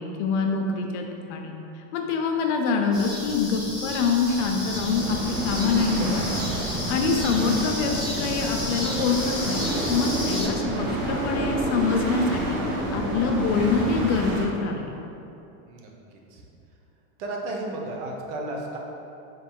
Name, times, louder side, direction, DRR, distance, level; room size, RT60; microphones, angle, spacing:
voice 1, 0.0-1.5 1.9-6.3 6.9-12.6 12.9-14.8, left 4 dB, 60° left, 3 dB, 0.5 m, -25 dB
sound 1, 2.9-10.5, left 1 dB, ahead, 0.8 m, -33 dB
sound 2, 4.3-14.5, right 1 dB, 25° right, 0.3 m, -29 dB
voice 2, 6.0-6.5 15.6-16.4 17.2-18.8, right 2 dB, 55° right, 0 dB, 0.7 m, -34 dB
4.3 x 3.7 x 2.2 m, 2.8 s
supercardioid pair, 155°, 40 cm